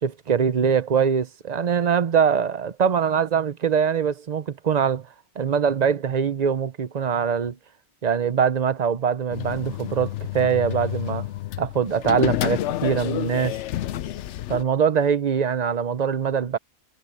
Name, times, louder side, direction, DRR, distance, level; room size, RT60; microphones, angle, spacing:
voice 1, 0.0-5.1 5.4-7.6 8.0-11.3 11.6-13.6 14.5-16.6, right 7 dB, 40° right, 0.7 m, -23 dB
sound 1, 9.3-14.6, left 13 dB, 70° left, 0.8 m, -29 dB
omnidirectional pair, 1.4 m